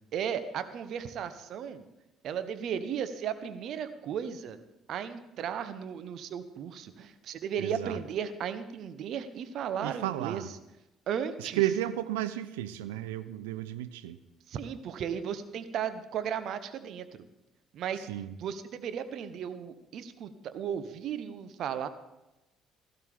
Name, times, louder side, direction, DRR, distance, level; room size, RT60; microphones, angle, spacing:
voice 1, 0.1-1.8 2.2-4.6 4.9-10.4 11.1-11.6 14.5-17.3 17.7-18.1 18.4-21.9, right 8 dB, 55° right, 11 dB, 0.9 m, -35 dB
voice 2, 7.6-8.0 9.8-10.5 11.4-14.2 18.1-18.3, right 13 dB, 75° right, 12 dB, 0.6 m, -33 dB
16.5 x 13.0 x 3.5 m, 0.95 s
figure-of-eight pair, 50°, 0 cm